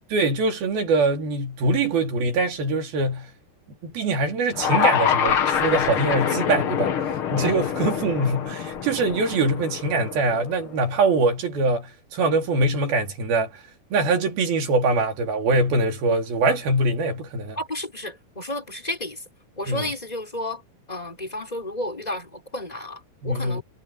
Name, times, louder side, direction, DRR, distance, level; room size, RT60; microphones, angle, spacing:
voice 1, 0.1-3.3 3.8-6.9 7.3-13.5 13.9-17.6 19.7-19.9 23.2-23.6, right 2 dB, 65° right, 4.7 m, -23 dB
sound 1, 4.5-10.8, left 8 dB, 85° left, 1.2 m, -25 dB
voice 2, 17.6-19.2 19.6-20.6 20.9-23.6, left 1 dB, 10° left, 5.5 m, -32 dB
omnidirectional pair, 4.7 m